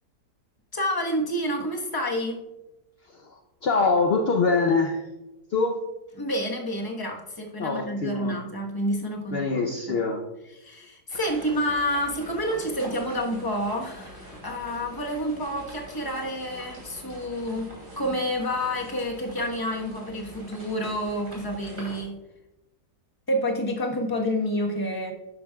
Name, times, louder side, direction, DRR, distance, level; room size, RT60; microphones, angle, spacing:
voice 1, 0.7-2.4 6.2-9.5 9.9-10.0 10.6-22.1 23.3-25.1, equal, 15° left, 1 dB, 1.0 m, -29 dB
voice 2, 3.1-5.0 5.5-5.8 7.6-8.4 9.3-10.2, left 4 dB, 60° left, 3 dB, 0.6 m, -24 dB
sound 1, 11.1-22.0, equal, 50° right, 3.4 m, -44 dB
11.5 x 9.3 x 2.3 m, 1.0 s
omnidirectional pair, 1.8 m